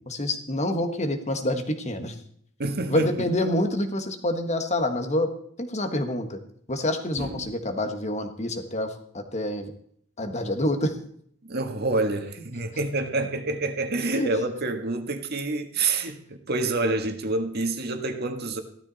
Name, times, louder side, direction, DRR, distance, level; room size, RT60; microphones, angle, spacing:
voice 1, 0.0-2.1 2.9-5.3 5.6-6.4 6.7-9.7 10.2-10.9 14.1-14.3, left 1 dB, 35° left, 7 dB, 1.6 m, -27 dB
voice 2, 2.6-3.3 7.2-7.5 11.4-18.6, right 2 dB, 55° right, 6 dB, 1.7 m, -27 dB
16.0 x 13.0 x 4.2 m, 0.64 s
head